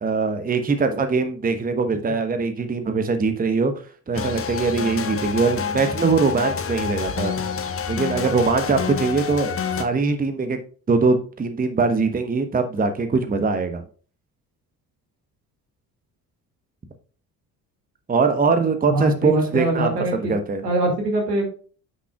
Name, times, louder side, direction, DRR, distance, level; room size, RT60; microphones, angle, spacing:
voice 1, 0.0-3.7 4.1-7.3 7.9-10.6 10.9-13.8 18.1-20.6, right 4 dB, 20° right, 8 dB, 1.0 m, -22 dB
sound 1, 4.1-9.8, left 6 dB, 30° left, 1.1 m, -28 dB
voice 2, 18.9-20.3 20.6-21.5, right 1 dB, 80° right, 1 dB, 2.3 m, -23 dB
9.5 x 6.0 x 2.3 m, 0.40 s
figure-of-eight pair, 50°, 48 cm